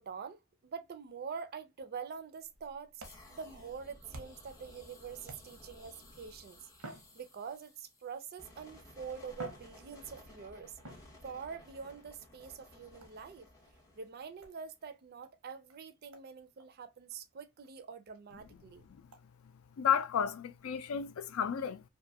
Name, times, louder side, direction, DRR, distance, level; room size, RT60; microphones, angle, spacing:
voice 1, 0.0-3.0 3.3-6.6 7.1-10.8 11.2-13.5 13.9-18.9, right 6 dB, 45° right, 0.4 m, -45 dB
sound 1, 2.4-4.6 5.2-5.8 6.7-7.8 8.7-8.8 9.3-10.4 10.8-11.6 13.0-13.3 14.4-14.6 15.2-15.3 15.7-15.8 16.1-16.3 16.6-16.7 17.1-17.2 17.6-17.7 18.1-18.2 19.1-19.2, right 1 dB, 90° right, 0.8 m, -51 dB
sound 2, 3.0-14.8, left 1 dB, 15° left, 0.6 m, -57 dB
voice 2, 19.8-21.8, left 7 dB, 75° left, 0.4 m, -32 dB
2.5 x 2.3 x 2.6 m
head